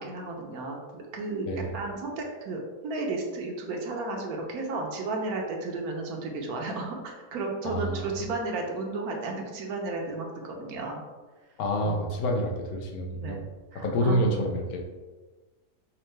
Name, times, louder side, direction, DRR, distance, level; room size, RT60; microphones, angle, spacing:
voice 1, 0.0-11.0 11.8-12.1 13.1-13.4 13.7-14.4, right 3 dB, 85° right, 1 dB, 1.2 m, -33 dB
voice 2, 7.6-8.1 11.6-13.4 13.7-14.9, equal, 80° left, 1 dB, 1.1 m, -28 dB
5.4 x 2.1 x 3.2 m, 1.3 s
omnidirectional pair, 1.5 m